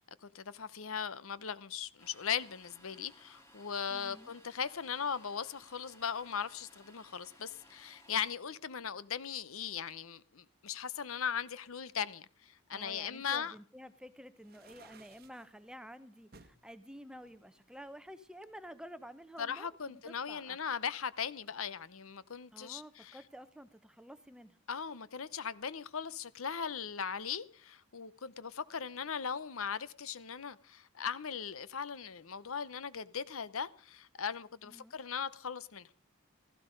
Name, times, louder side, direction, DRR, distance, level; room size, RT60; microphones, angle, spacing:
voice 1, 0.0-13.5 19.4-23.2 24.7-35.9, left 7 dB, 75° left, 0.8 m, -39 dB
Domestic sounds home sounds, 2.0-8.3, left 1 dB, 10° left, 3.1 m, -61 dB
voice 2, 3.9-4.3 12.7-20.6 22.5-24.6 34.6-34.9, equal, 5° right, 0.7 m, -51 dB
sound 1, 14.4-15.5 16.3-16.6 17.2-18.3, right 4 dB, 45° right, 1.1 m, -59 dB
16.0 x 15.5 x 5.1 m
head